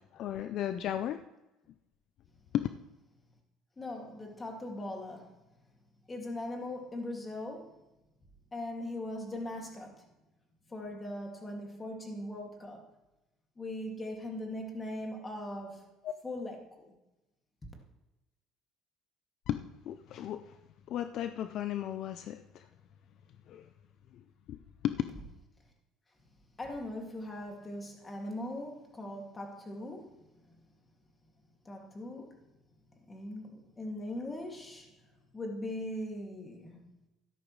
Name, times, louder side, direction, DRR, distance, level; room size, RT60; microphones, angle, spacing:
voice 1, 0.1-1.2 2.5-2.7 16.0-16.1 19.5-20.4 20.9-22.6 23.5-23.6 24.5-24.6 24.8-24.9, left 11 dB, 60° left, 0.5 m, -34 dB
voice 2, 3.8-5.4 6.1-7.8 8.5-10.1 10.7-12.8 13.6-15.8 16.2-17.0 17.6-17.7 26.6-30.6 31.6-32.4 33.1-35.0 35.3-37.0, left 1 dB, 20° left, 2.4 m, -40 dB
12.5 x 11.0 x 3.2 m
cardioid pair, 120°, 0 cm